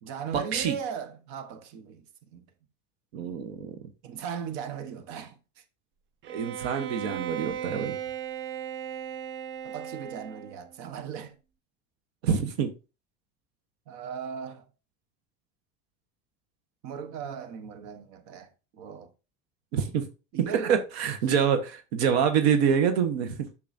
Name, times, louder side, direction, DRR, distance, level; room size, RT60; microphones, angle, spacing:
voice 1, 0.0-2.0 2.3-2.4 4.0-5.6 9.6-11.4 13.9-14.7 16.8-19.1 20.3-20.8, right 7 dB, 65° right, 1.2 m, -38 dB
voice 2, 3.1-3.7 6.3-8.0 12.2-12.7 19.7-20.1 20.5-23.5, right 7 dB, 90° right, 1.1 m, -26 dB
Bowed string instrument, 6.2-10.7, right 9 dB, 40° right, 0.5 m, -37 dB
7.1 x 6.5 x 2.6 m
supercardioid pair, 120°, 31 cm